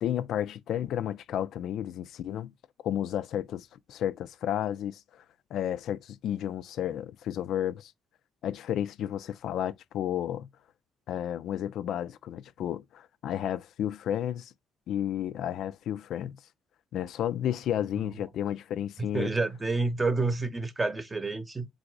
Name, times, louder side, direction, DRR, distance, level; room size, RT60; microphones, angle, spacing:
voice 1, 0.0-2.5 2.8-5.0 5.5-7.9 8.4-10.5 11.1-14.5 14.9-16.4 16.9-19.3, left 10 dB, 70° left, 0.4 m, -32 dB
voice 2, 19.1-21.7, right 3 dB, 20° right, 0.8 m, -29 dB
3.9 x 2.6 x 4.6 m
cardioid pair, 85°, 0 cm